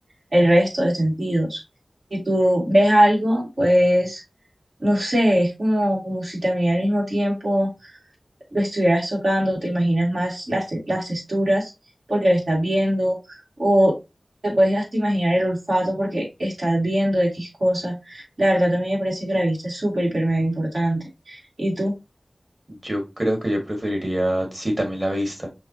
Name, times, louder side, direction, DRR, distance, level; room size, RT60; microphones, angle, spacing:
voice 1, 0.3-1.6 2.1-4.2 4.8-7.9 8.5-11.7 12.1-14.0 14.4-21.9, equal, 70° right, -3 dB, 2.5 m, -21 dB
voice 2, 22.7-25.5, equal, 35° right, 2 dB, 1.9 m, -25 dB
6.0 x 2.8 x 2.9 m, 0.25 s
wide cardioid pair, 45°, 0 cm